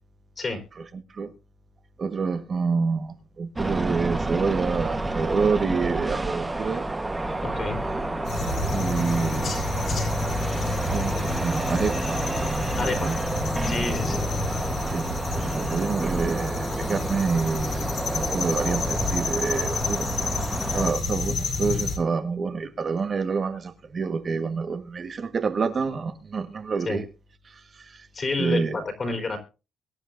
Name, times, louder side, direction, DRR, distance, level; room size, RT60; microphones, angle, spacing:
voice 1, 0.8-1.3 2.0-6.9 8.7-9.6 10.9-12.2 12.7-13.2 14.1-14.2 14.8-20.1 20.7-27.1 27.4-28.1 28.4-28.8, right 5 dB, 45° right, 1.5 m, -28 dB
sound 1, 3.6-20.9, right 2 dB, 15° right, 1.3 m, -29 dB
voice 2, 7.4-7.8 12.8-13.1 13.7-14.3 26.8-27.0 28.1-29.4, left 3 dB, 40° left, 4.5 m, -29 dB
sound 2, 8.2-22.0, left 3 dB, 65° left, 4.9 m, -29 dB
23.0 x 9.3 x 2.6 m
cardioid pair, 90°, 0 cm